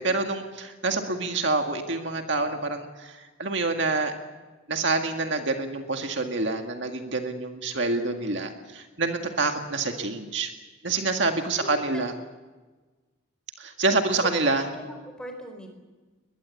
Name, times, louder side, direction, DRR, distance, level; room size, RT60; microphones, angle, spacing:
voice 1, 0.0-4.1 4.7-10.5 10.8-12.1 13.6-14.7, right 3 dB, 60° right, 5 dB, 2.0 m, -27 dB
voice 2, 11.5-11.8 14.6-15.7, equal, 5° left, 4 dB, 4.5 m, -40 dB
21.5 x 21.5 x 8.4 m, 1.3 s
head